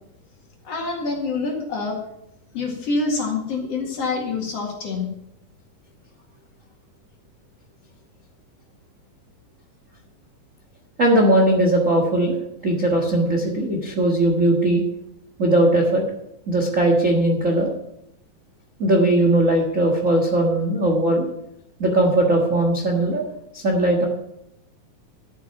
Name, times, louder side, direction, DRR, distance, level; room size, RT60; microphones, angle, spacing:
voice 1, 0.7-2.0 2.5-5.1, left 3 dB, 50° left, 0 dB, 2.7 m, -26 dB
voice 2, 11.0-12.4 12.6-14.8 15.4-16.0 16.5-17.7 18.8-21.3 21.8-23.2 23.5-24.1, right 1 dB, 45° right, 1 dB, 1.0 m, -19 dB
12.0 x 8.5 x 5.7 m, 0.80 s
omnidirectional pair, 4.0 m